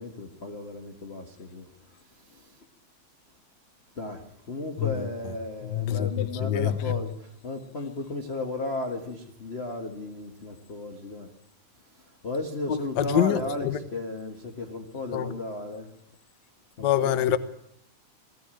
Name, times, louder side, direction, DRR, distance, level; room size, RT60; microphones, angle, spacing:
voice 1, 0.0-1.7 2.3-2.5 4.0-11.3 12.2-15.9 16.8-17.4, left 2 dB, 35° left, 1.1 m, -35 dB
voice 2, 5.7-6.7 13.0-13.4 13.7-13.8 15.1-15.2 16.8-17.4, left 10 dB, 85° left, 0.9 m, -24 dB
20.0 x 15.0 x 8.9 m
omnidirectional pair, 3.4 m